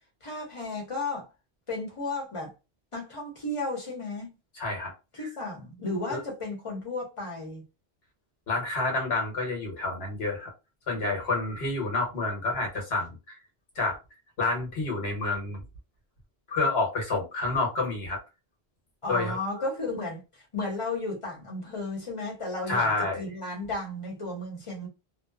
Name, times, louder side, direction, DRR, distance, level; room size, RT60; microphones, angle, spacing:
voice 1, 0.2-1.3 1.7-2.5 2.9-4.3 5.1-7.6 19.0-22.9 23.2-24.9, left 2 dB, 35° left, 0.9 m, -34 dB
voice 2, 4.6-4.9 6.1-6.2 8.5-10.5 10.9-13.3 13.8-14.0 14.4-15.6 16.5-18.2 19.1-19.6 22.7-23.2, left 3 dB, 75° left, 1.3 m, -29 dB
2.8 x 2.1 x 2.3 m
omnidirectional pair, 1.0 m